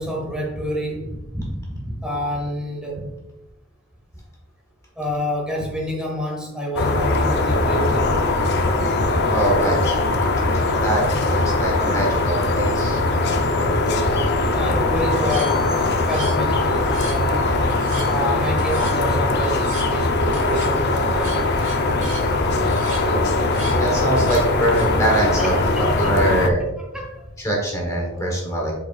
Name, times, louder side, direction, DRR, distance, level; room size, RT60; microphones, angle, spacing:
voice 1, 0.0-3.1 5.0-8.1 14.5-15.7 16.1-17.5 18.1-22.0 22.2-22.3 25.4-26.4 26.9-27.2 28.1-28.3, equal, 5° right, -2 dB, 1.2 m, -28 dB
sound 1, 6.8-26.5, left 2 dB, 55° left, 0.6 m, -21 dB
voice 2, 9.3-10.1 10.5-11.0 11.3-13.0 23.8-26.6 27.4-28.7, right 1 dB, 15° left, -1 dB, 1.2 m, -23 dB
sound 2, 15.2-16.5 16.8-17.3 17.7-18.2 18.6-19.0 19.4-19.9 20.3-20.7 21.1-22.3 22.6-23.1 23.4-23.8 24.2-25.2, right 3 dB, 40° right, 1.7 m, -38 dB
7.8 x 5.1 x 2.4 m, 0.96 s
head